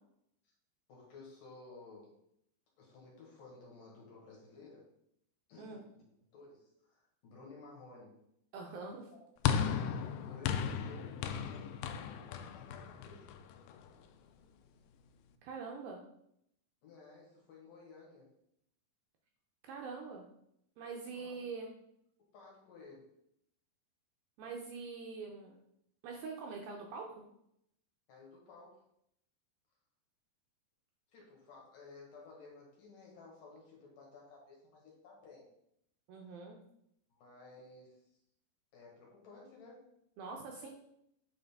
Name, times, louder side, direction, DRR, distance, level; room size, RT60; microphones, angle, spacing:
voice 1, 0.9-2.2 2.8-4.9 5.5-6.1 6.3-8.2 9.1-9.2 10.2-13.4 16.8-18.3 21.1-21.4 22.3-23.1 28.1-28.8 31.1-35.5 37.1-38.0 38.7-39.9 40.5-40.6, left 3 dB, 60° left, -3 dB, 2.8 m, -55 dB
voice 2, 8.5-9.1 15.4-16.0 19.6-20.3 20.8-21.7 24.4-25.6 26.0-27.2 36.1-36.6 40.2-40.7, right 4 dB, 80° right, 1 dB, 2.2 m, -44 dB
sound 1, 9.4-13.9, left 8 dB, 85° left, 2.7 m, -36 dB
8.8 x 3.9 x 3.5 m, 0.75 s
omnidirectional pair, 4.8 m